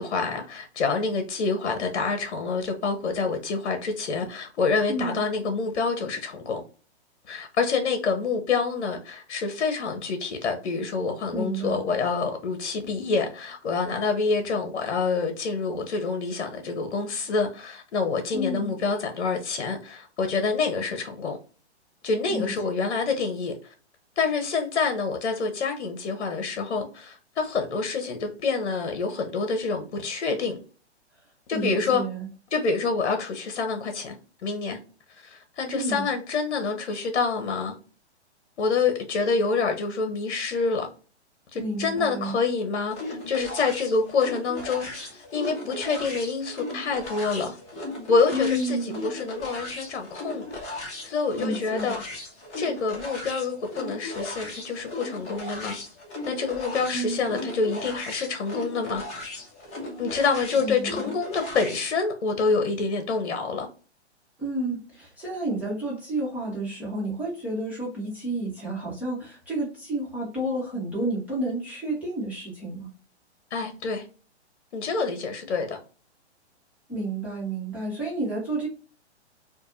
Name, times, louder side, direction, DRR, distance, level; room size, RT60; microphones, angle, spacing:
voice 1, 0.0-6.6 7.3-21.4 22.0-23.5 24.2-30.6 31.5-32.0 32.5-34.2 34.4-34.8 35.2-37.7 38.6-40.9 41.5-47.6 48.1-50.6 51.0-52.0 52.5-55.8 56.3-59.0 60.0-63.7 73.5-74.0 74.7-75.8, left 4 dB, 70° left, 1.0 m, -27 dB
voice 2, 4.9-5.2 11.3-11.8 18.3-18.7 22.3-22.5 31.5-32.3 35.7-36.0 41.5-42.4 48.3-49.0 51.3-52.0 56.9-57.4 60.6-61.1 64.4-72.9 76.9-78.7, right 1 dB, 5° right, 1.5 m, -30 dB
sound 1, 42.9-61.9, left 1 dB, 20° left, 1.6 m, -37 dB
4.5 x 2.6 x 2.6 m
hypercardioid pair, 145°, 34 cm